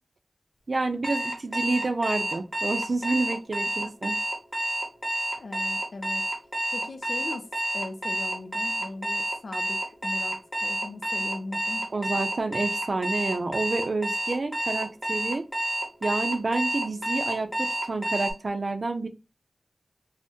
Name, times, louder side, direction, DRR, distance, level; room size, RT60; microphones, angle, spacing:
voice 1, 0.7-4.2 11.9-15.4 16.0-19.1, right 3 dB, 65° right, 0.5 m, -29 dB
Alarm, 1.0-18.3, right 1 dB, 5° right, 1.0 m, -29 dB
voice 2, 3.8-4.1 5.4-6.2 6.7-7.5 7.7-10.3 10.6-11.9, left 2 dB, 75° left, 0.4 m, -39 dB
2.6 x 2.1 x 3.5 m
wide cardioid pair, 70°, 0 cm